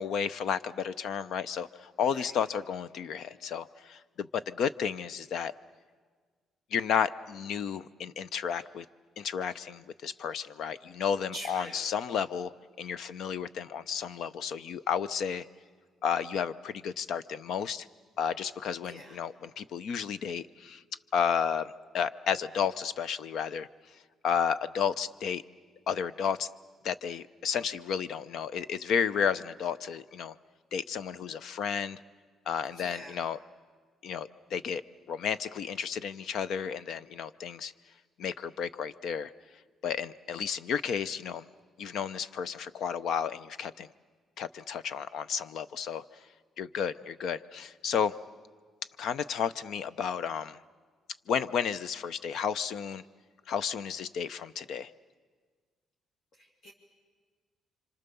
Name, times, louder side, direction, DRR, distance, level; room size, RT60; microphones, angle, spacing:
voice 1, 0.0-5.5 6.7-8.8 9.2-12.5 12.8-15.5 16.0-17.9 18.2-20.8 21.1-23.7 24.2-25.4 25.9-26.5 26.8-30.3 30.7-32.0 32.5-33.4 34.0-34.8 35.1-37.7 38.2-39.3 39.8-41.4 41.8-43.9 44.4-46.0 46.6-48.1 49.0-50.6 51.3-53.0 53.5-54.9, left 7 dB, 55° left, 16 dB, 0.7 m, -32 dB
voice 2, 2.1-2.4 11.3-11.9 18.8-19.2 32.7-33.3 56.3-56.7, equal, 40° left, -1 dB, 2.6 m, -45 dB
29.0 x 26.0 x 7.0 m, 1.5 s
cardioid pair, 175°, 0 cm